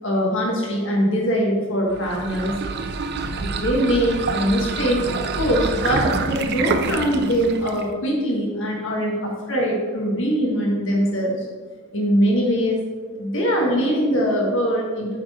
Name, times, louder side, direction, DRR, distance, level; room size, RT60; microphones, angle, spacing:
voice 1, 0.0-2.5 3.4-11.5 11.9-12.8 13.2-15.2, equal, 65° left, -2 dB, 1.7 m, -22 dB
sound 1, 1.9-7.9, right 4 dB, 50° right, 0.5 m, -27 dB
8.5 x 4.4 x 5.0 m, 1.5 s
head